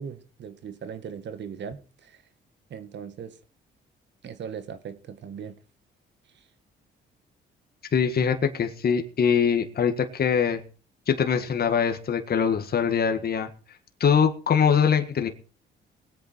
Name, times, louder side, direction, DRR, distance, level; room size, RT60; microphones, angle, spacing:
voice 1, 0.0-2.2 2.7-3.4 4.2-5.6 6.3-6.5, right 7 dB, 65° right, 1.7 m, -39 dB
voice 2, 7.9-10.6 11.1-13.5 14.0-15.3, left 7 dB, 50° left, 1.8 m, -23 dB
20.5 x 8.6 x 4.5 m
cardioid pair, 90°, 20 cm